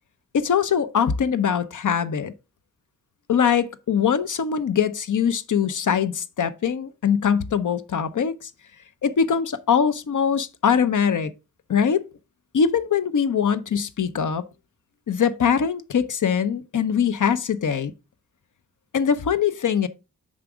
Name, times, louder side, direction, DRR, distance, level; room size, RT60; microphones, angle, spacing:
voice 1, 0.3-2.3 3.3-8.5 9.0-11.3 11.7-12.0 12.5-14.4 15.1-17.9 18.9-19.9, left 7 dB, 65° left, 0.7 m, -22 dB
7.4 x 4.9 x 3.5 m
wide cardioid pair, 75°, 34 cm